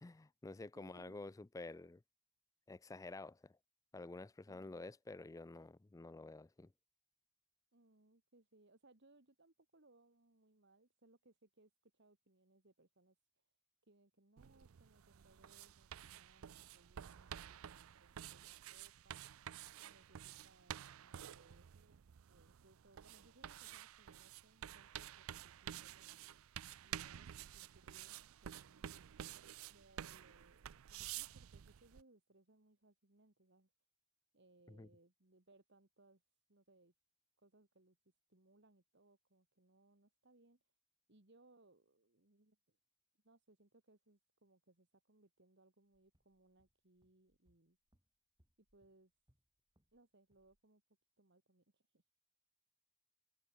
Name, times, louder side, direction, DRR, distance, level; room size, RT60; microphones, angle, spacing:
voice 1, 0.0-2.0 2.7-3.6 3.9-6.7 34.7-34.9, left 2 dB, 15° left, 0.4 m, -50 dB
voice 2, 0.8-1.2 7.7-13.5 13.8-19.3 19.8-26.4 26.8-29.1 29.7-33.7 34.3-36.2 36.5-36.9 37.4-40.8 41.1-42.8 43.2-47.8 48.7-49.1 49.9-50.8 51.2-52.0, right 2 dB, 55° right, 2.1 m, -69 dB
sound 1, 14.4-32.0, right 10 dB, 75° right, 0.4 m, -51 dB
sound 2, 45.9-50.0 50.3-50.6, equal, 20° right, 3.4 m, -80 dB
head